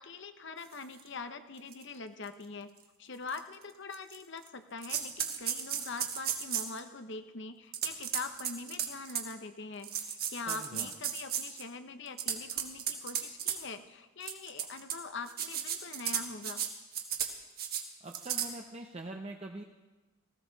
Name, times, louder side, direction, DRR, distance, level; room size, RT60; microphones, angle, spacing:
voice 1, 0.0-2.7 3.0-16.6, left 4 dB, 55° left, 8 dB, 0.9 m, -43 dB
sound 1, 1.0-1.1 1.7-1.8 2.3-2.4 3.3-3.4 3.9-4.5 4.8-6.8 7.7-9.3 9.8-11.6 12.1-13.6 14.2-15.0 15.3-16.7 16.9-17.3 17.6-17.8 18.1-18.5, right 9 dB, 45° right, 1.4 m, -34 dB
voice 2, 10.5-10.9 18.0-19.6, right 2 dB, 30° right, 2 dB, 0.7 m, -43 dB
18.5 x 15.5 x 4.0 m, 1.2 s
head